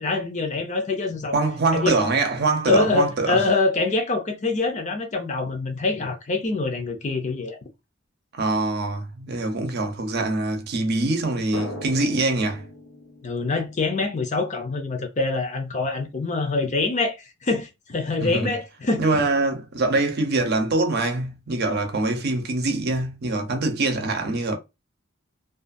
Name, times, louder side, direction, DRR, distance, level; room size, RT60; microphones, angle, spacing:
voice 1, 0.0-1.4 1.7-2.0 2.7-7.6 13.2-17.2 17.4-19.2, left 3 dB, 35° left, 0.5 m, -25 dB
voice 2, 1.3-3.4 8.4-12.6 18.2-18.5 19.0-24.6, right 2 dB, 55° right, 0.6 m, -24 dB
Drum, 11.5-14.9, left 1 dB, 90° left, 1.1 m, -39 dB
2.4 x 2.3 x 2.5 m
head